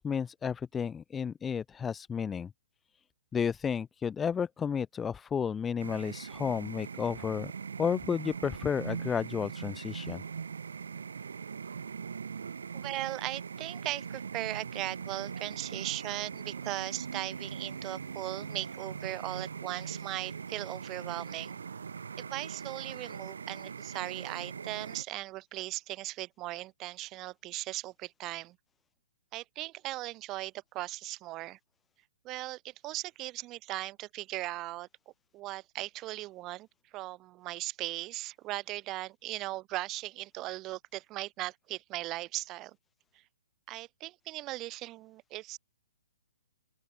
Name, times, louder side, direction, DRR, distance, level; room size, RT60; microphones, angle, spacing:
voice 1, 0.0-2.5 3.3-7.5 7.8-10.2, left 7 dB, 10° left, 0.5 m, -32 dB
sound 1, 5.8-25.0, right 6 dB, 80° right, 4.0 m, -41 dB
voice 2, 12.7-21.6 22.3-28.6 29.3-31.6 32.2-34.9 35.3-36.7 36.9-42.8 43.7-45.6, right 18 dB, 15° right, 1.2 m, -38 dB
open air
hypercardioid pair, 175°, 0 cm